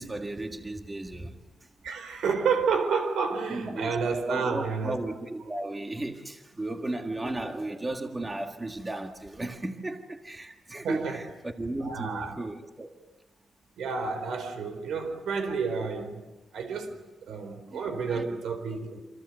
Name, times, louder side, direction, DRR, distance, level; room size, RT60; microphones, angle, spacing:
voice 1, 0.0-1.4 3.5-4.0 4.3-12.9 15.4-15.6 17.7-18.2, right 2 dB, 15° right, 1.7 m, -35 dB
voice 2, 1.8-5.0 10.8-11.2 11.8-12.4 13.8-16.2 16.5-19.0, right 5 dB, 90° right, 4.3 m, -30 dB
28.0 x 27.0 x 7.9 m
wide cardioid pair, 175°, 0 cm